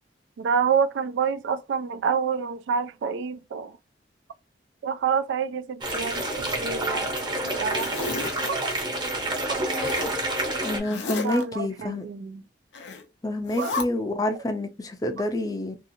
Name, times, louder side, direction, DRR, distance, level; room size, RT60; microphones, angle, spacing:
voice 1, 0.4-3.7 4.8-7.1 7.5-7.9 8.5-8.6 9.5-9.6 11.2-12.4 13.6-13.7, right 6 dB, 80° right, 0.3 m, -27 dB
sound 1, 5.8-10.8, right 2 dB, 25° right, 0.7 m, -28 dB
Zipper (clothing), 5.9-6.9 7.4-8.5 9.7-10.2 10.8-11.4 12.7-13.0 13.4-13.8, left 3 dB, 80° left, 0.6 m, -34 dB
voice 2, 10.6-12.0 13.2-15.8, left 1 dB, 20° left, 0.4 m, -28 dB
2.8 x 2.4 x 2.6 m
head